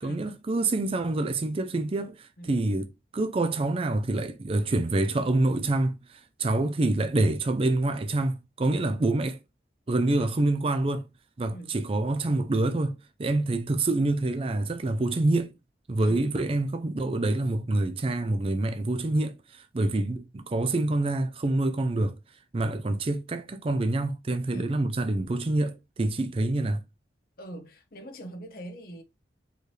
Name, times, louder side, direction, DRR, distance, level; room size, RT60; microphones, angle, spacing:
voice 1, 0.0-9.4 9.9-11.0 11.4-15.5 15.9-22.2 22.5-26.8, right 2 dB, 30° right, 0.4 m, -26 dB
voice 2, 27.4-29.0, right 1 dB, 55° left, 1.0 m, -43 dB
4.6 x 3.1 x 3.2 m
head